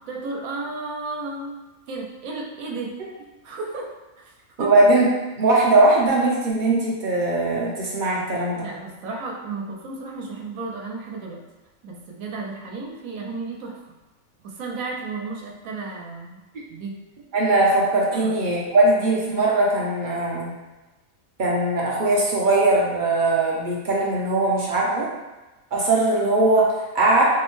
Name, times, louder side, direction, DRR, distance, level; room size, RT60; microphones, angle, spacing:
voice 1, 0.1-1.5 1.9-2.9 3.4-4.3 4.6-4.7 8.6-11.4 11.8-13.8 14.4-16.4 16.7-16.9 18.1-18.4, right 3 dB, 80° right, 0 dB, 1.0 m, -33 dB
voice 2, 4.6-5.1 5.4-8.7 17.3-20.6 21.4-25.1 25.7-27.2, right 2 dB, 55° right, -4 dB, 0.6 m, -20 dB
4.6 x 2.1 x 3.0 m, 1.1 s
omnidirectional pair, 1.4 m